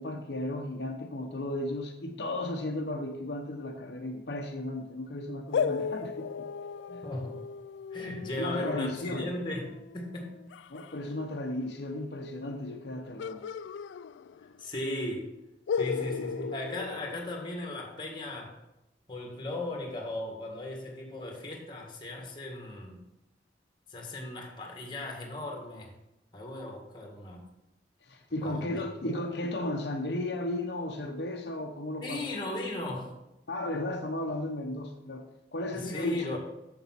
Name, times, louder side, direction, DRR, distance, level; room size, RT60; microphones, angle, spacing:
voice 1, 0.0-6.5 6.9-7.0 8.4-9.3 10.7-13.4 28.1-32.2 33.5-35.2 35.5-36.4, left 1 dB, 70° left, 2 dB, 0.9 m, -34 dB
sound 1, 5.5-11.0 13.2-14.7 14.9-15.0 15.7-17.9, left 6 dB, 85° left, 0.3 m, -36 dB
voice 2, 7.0-7.4 7.9-10.4 14.6-15.4 15.8-18.6 19.1-23.0 23.9-25.9 26.3-27.4 28.4-29.2 32.0-33.2 35.7-36.4, left 1 dB, 25° left, 1 dB, 1.8 m, -37 dB
7.2 x 7.1 x 5.8 m, 0.92 s
head